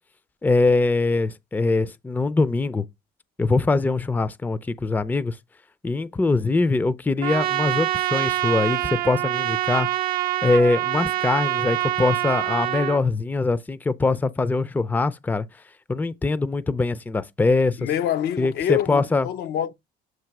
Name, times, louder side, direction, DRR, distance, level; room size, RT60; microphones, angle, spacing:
voice 1, 0.4-2.8 3.4-5.4 5.8-9.9 10.4-15.5 15.9-17.9 18.4-19.3, left 3 dB, 10° left, 0.4 m, -22 dB
Trumpet, 7.2-13.0, right 15 dB, 60° right, 0.5 m, -25 dB
voice 2, 17.8-19.7, left 10 dB, 75° left, 0.6 m, -26 dB
7.7 x 2.7 x 5.9 m
cardioid pair, 110°, 17 cm